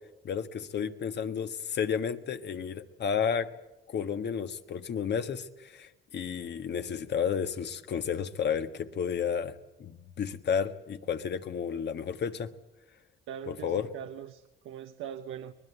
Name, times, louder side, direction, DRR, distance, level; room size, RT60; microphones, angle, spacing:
voice 1, 0.2-3.5 3.9-9.5 9.8-12.5 13.5-13.9, left 7 dB, 60° left, 9 dB, 1.5 m, -32 dB
voice 2, 13.3-15.5, right 9 dB, 85° right, 8 dB, 0.9 m, -41 dB
24.0 x 19.5 x 8.1 m, 1.0 s
cardioid pair, 90°, 20 cm